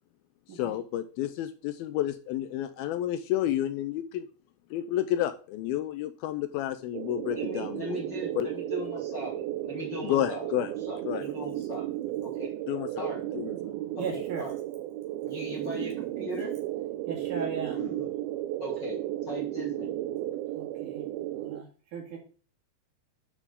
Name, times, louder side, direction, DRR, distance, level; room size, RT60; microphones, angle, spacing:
voice 1, 0.5-4.3 4.7-7.9 8.4-8.5 10.0-10.7 11.0-11.2 12.7-13.1 13.3-13.7, left 12 dB, 80° left, 9 dB, 2.4 m, -30 dB
sound 1, 6.9-21.6, right 14 dB, 80° right, 2.4 m, -34 dB
voice 2, 7.3-10.5 10.9-11.9 12.2-12.6 13.0-13.2 13.9-14.5 15.2-16.5 17.7-18.1 18.6-19.0 19.3-19.9, left 1 dB, 45° left, -2 dB, 1.4 m, -39 dB
voice 3, 14.0-14.5 17.1-17.8 20.5-21.0 21.4-22.2, right 5 dB, 55° right, 0 dB, 3.4 m, -37 dB
8.3 x 6.8 x 3.7 m, 0.38 s
omnidirectional pair, 4.6 m